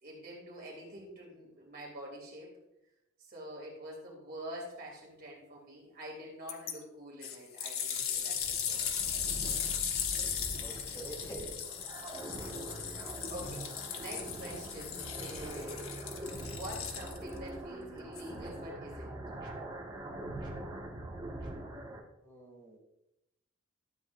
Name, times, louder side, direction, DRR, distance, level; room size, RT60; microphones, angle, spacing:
voice 1, 0.0-2.6 3.2-8.9 12.4-19.2, equal, 45° right, -3 dB, 3.2 m, -47 dB
sound 1, 6.5-6.7 7.2-17.4 18.2-18.3, left 8 dB, 80° left, 1.1 m, -37 dB
sound 2, 7.8-22.0, right 1 dB, 20° right, 1.7 m, -43 dB
voice 2, 10.6-11.6 22.2-22.8, right 1 dB, 10° left, -5 dB, 3.5 m, -46 dB
13.0 x 8.6 x 2.6 m, 0.86 s
head